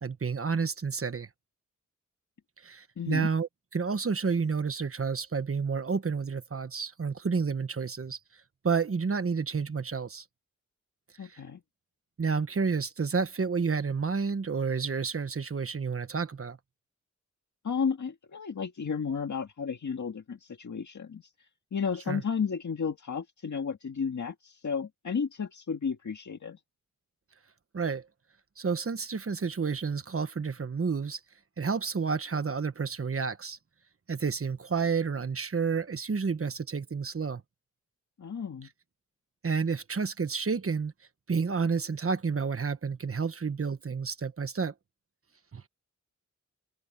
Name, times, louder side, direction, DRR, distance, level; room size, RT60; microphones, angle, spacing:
voice 1, 0.0-1.3 2.6-8.2 8.6-10.2 11.3-11.4 12.2-16.6 22.1-22.2 27.7-28.1 28.6-31.2 31.6-33.6 34.1-37.4 39.4-40.9 41.3-44.7 45.5-45.7, right 5 dB, 50° right, 1.2 m, -30 dB
voice 2, 3.0-3.3 11.2-11.6 17.6-21.3 21.7-26.6 38.2-38.7, left 6 dB, 70° left, 1.9 m, -33 dB
wide cardioid pair, 110°, 30 cm